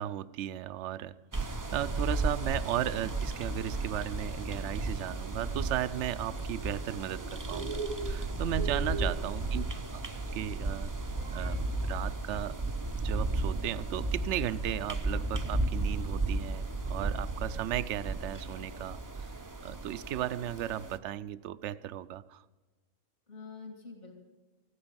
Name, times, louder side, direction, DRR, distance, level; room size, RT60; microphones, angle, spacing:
voice 1, 0.0-9.6 10.3-10.9 11.3-12.6 13.0-19.3 19.6-22.4, right 12 dB, 65° right, 16 dB, 0.9 m, -36 dB
sound 1, 1.3-21.0, right 2 dB, 20° right, 0.5 m, -34 dB
Bird, 7.0-19.1, right 4 dB, 85° right, 1.9 m, -45 dB
voice 2, 8.9-9.5 23.3-24.1, left 4 dB, 60° left, 0 dB, 2.8 m, -47 dB
14.5 x 9.7 x 8.8 m, 1.3 s
omnidirectional pair, 1.4 m